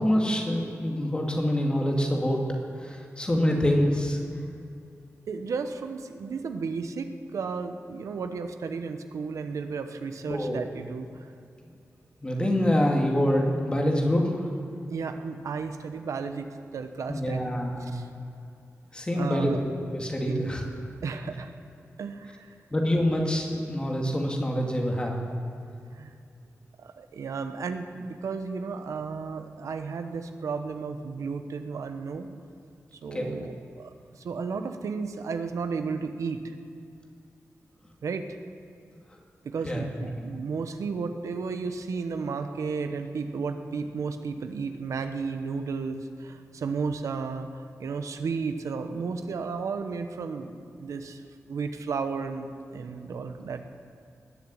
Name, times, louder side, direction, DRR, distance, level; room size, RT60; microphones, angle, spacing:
voice 1, 0.0-2.4 2.8-4.2 10.3-10.6 12.2-14.4 17.1-18.0 18.9-20.7 22.7-25.2 33.1-33.4 39.6-39.9, equal, 20° left, 0 dB, 2.2 m, -26 dB
voice 2, 5.3-11.3 14.9-17.5 17.8-18.1 19.2-19.6 20.2-20.6 21.0-21.5 22.0-22.5 25.9-26.1 26.8-32.3 32.9-36.5 38.0-38.4 39.4-51.2 51.5-53.8, right 5 dB, 90° right, 7 dB, 1.1 m, -33 dB
19.5 x 7.2 x 9.7 m, 2.4 s
wide cardioid pair, 145°, 5 cm